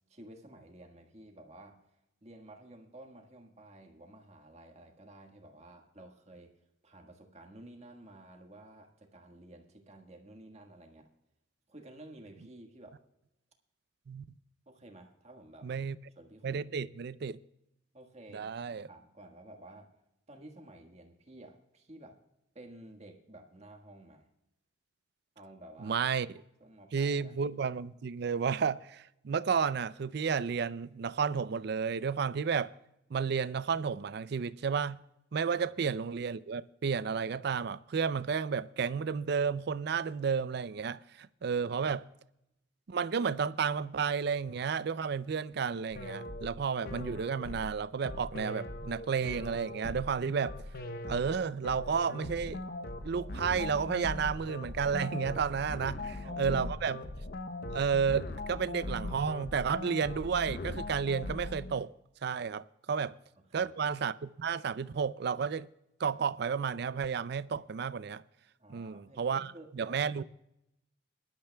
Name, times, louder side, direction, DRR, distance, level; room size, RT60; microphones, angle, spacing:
voice 1, 0.1-1.8 2.2-6.5 6.8-11.1 11.7-13.0 14.6-15.7 16.1-16.7 17.9-19.9 20.3-22.2 22.5-24.3 25.3-26.0 26.6-27.3 35.6-35.7 55.7-56.9 62.9-63.7 68.6-70.1, right 1 dB, 35° right, 1.6 m, -53 dB
voice 2, 15.6-16.0 16.4-17.4 18.3-18.9 25.8-26.3 26.9-32.7 33.1-35.0 35.3-42.0 42.9-50.5 51.1-52.6 53.0-57.0 57.7-61.9 62.2-63.1 63.5-65.7 66.0-68.2 68.7-70.2, right 6 dB, 60° right, 0.4 m, -32 dB
sound 1, 45.9-61.8, left 2 dB, 50° left, 0.8 m, -40 dB
22.0 x 12.0 x 2.3 m
head